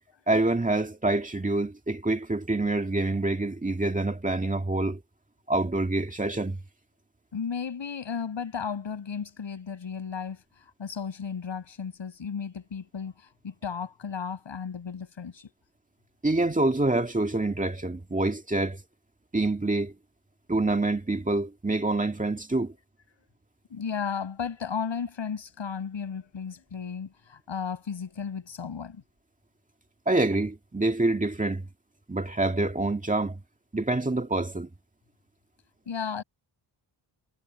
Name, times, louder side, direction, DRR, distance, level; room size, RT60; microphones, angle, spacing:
voice 1, 0.3-5.0 5.5-6.6 16.2-18.8 19.3-19.9 20.5-22.7 30.1-31.6 32.1-33.4 33.7-34.7, right 2 dB, 15° right, 2.0 m, -26 dB
voice 2, 7.3-15.5 23.7-29.0 35.9-36.2, left 6 dB, 65° left, 6.4 m, -34 dB
wide cardioid pair, 145°, 47 cm